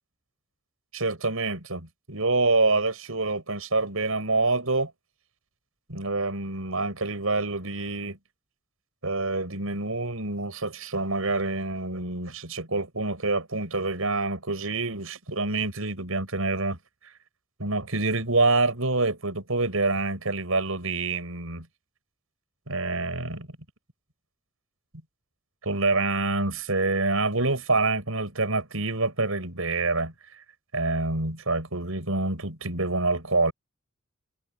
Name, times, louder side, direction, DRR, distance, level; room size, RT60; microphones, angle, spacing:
voice 1, 0.9-4.9 5.9-8.2 9.0-16.8 17.6-21.7 22.7-23.5 25.6-30.1 30.7-33.5, right 3 dB, 80° right, 5.9 m, -26 dB
head